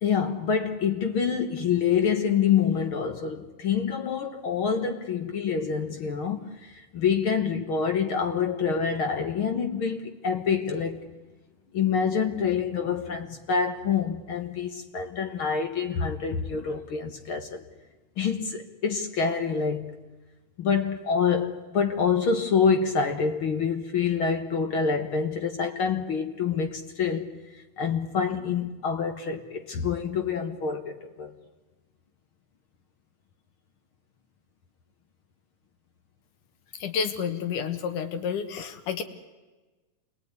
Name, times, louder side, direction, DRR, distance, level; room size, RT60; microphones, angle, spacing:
voice 1, 0.0-11.0 11.7-17.6 18.2-20.0 20.6-27.3 27.5-31.3, left 6 dB, 55° left, 1.5 m, -26 dB
voice 2, 36.8-39.0, left 7 dB, 70° left, 2.9 m, -30 dB
28.0 x 21.0 x 9.5 m
omnidirectional pair, 3.8 m